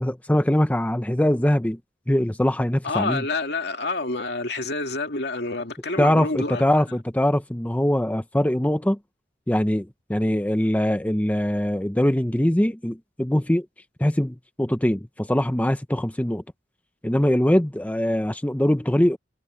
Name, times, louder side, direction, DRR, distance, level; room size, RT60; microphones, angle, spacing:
voice 1, 0.0-1.8 2.1-3.2 6.0-9.0 9.5-13.6 14.0-16.4 17.0-19.2, left 1 dB, 10° left, 0.7 m, -22 dB
voice 2, 2.8-6.6, left 3 dB, 70° left, 2.4 m, -28 dB
head